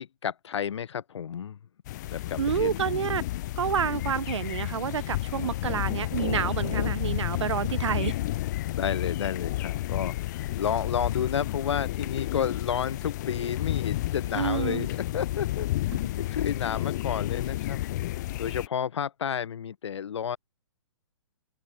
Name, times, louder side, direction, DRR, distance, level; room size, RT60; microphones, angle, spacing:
voice 1, 0.0-1.6 2.1-3.0 8.7-15.7 16.1-20.4, left 8 dB, 70° left, 1.2 m, -31 dB
sound 1, 1.9-18.7, left 16 dB, 40° left, 0.7 m, -31 dB
voice 2, 2.4-3.2 3.6-8.2 14.3-14.9 15.9-16.1, right 8 dB, 75° right, 0.7 m, -29 dB
open air
hypercardioid pair, 150°, 15 cm